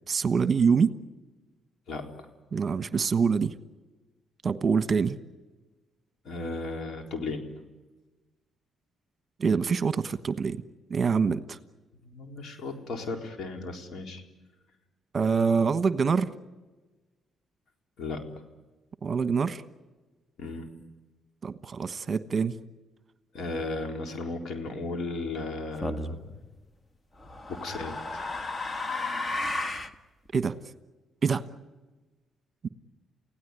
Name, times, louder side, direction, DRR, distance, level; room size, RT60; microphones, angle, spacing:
voice 1, 0.1-0.9 2.5-3.5 4.4-5.2 9.4-10.6 10.9-11.6 15.1-16.3 19.0-19.6 21.4-22.6 30.3-30.5 31.2-31.4 32.6-32.7, right 5 dB, 40° right, 12 dB, 1.2 m, -25 dB
voice 2, 6.2-7.5 12.0-14.2 18.0-18.3 20.4-20.7 23.3-26.3 27.5-28.2, left 3 dB, 65° left, 4 dB, 4.0 m, -35 dB
sound 1, 25.8-26.2 27.2-29.9, left 2 dB, 25° left, 1.7 m, -33 dB
29.5 x 17.0 x 9.8 m, 1.2 s
cardioid pair, 90°, 0 cm